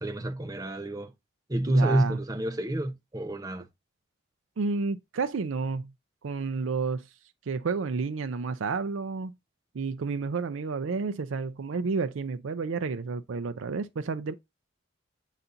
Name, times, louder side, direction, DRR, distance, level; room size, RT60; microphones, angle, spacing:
voice 1, 0.0-1.1 1.5-3.6, right 1 dB, 20° right, 0.7 m, -28 dB
voice 2, 1.7-2.2 4.6-5.9 6.2-7.1 7.5-9.4 9.7-14.3, right 4 dB, 75° right, 0.5 m, -30 dB
6.9 x 4.1 x 3.7 m
head